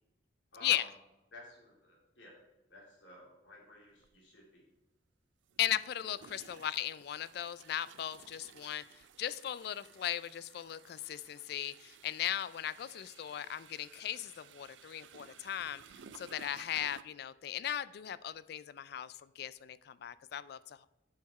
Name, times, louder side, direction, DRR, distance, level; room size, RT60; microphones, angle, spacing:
voice 1, 0.5-0.9 1.3-2.4 2.7-4.6 6.0-6.1 16.3-16.4, left 1 dB, 85° left, -2 dB, 2.7 m, -54 dB
sound 1, 4.0-4.1 5.5-17.0, right 7 dB, 90° right, 0.4 m, -57 dB
voice 2, 5.6-8.8 9.2-15.8 16.1-20.9, left 11 dB, 60° left, 17 dB, 0.3 m, -37 dB
7.5 x 5.7 x 4.2 m, 0.99 s
head